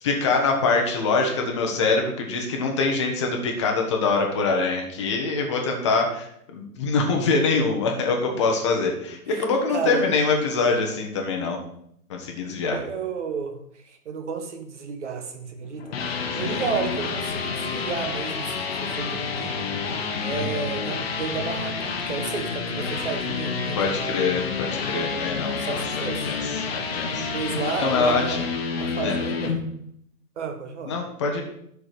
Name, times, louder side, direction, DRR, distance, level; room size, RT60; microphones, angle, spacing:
voice 1, 0.0-11.6 12.1-12.8 16.4-16.7 20.1-20.5 23.7-26.4 26.7-27.3 27.8-28.4 29.0-29.1 30.9-31.4, left 4 dB, 20° left, 2 dB, 0.9 m, -24 dB
voice 2, 9.3-10.1 12.7-16.0 16.3-19.5 20.2-24.3 25.6-26.4 27.3-29.6 30.4-31.0, right 5 dB, 45° right, 6 dB, 1.4 m, -32 dB
sound 1, 15.6-29.6, left 5 dB, 40° left, 1.1 m, -29 dB
12.0 x 4.8 x 5.1 m, 0.72 s
hypercardioid pair, 170°, 47 cm